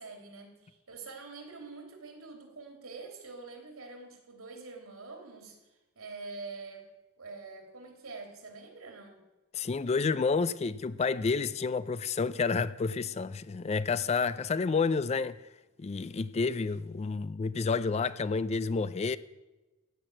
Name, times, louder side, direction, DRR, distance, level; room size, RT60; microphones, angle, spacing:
voice 1, 0.0-5.6 5.9-6.8 7.2-9.2, right 3 dB, 80° right, 3.2 m, -45 dB
voice 2, 9.5-15.4 15.8-19.2, left 4 dB, 30° left, 0.3 m, -30 dB
15.0 x 6.0 x 9.1 m
head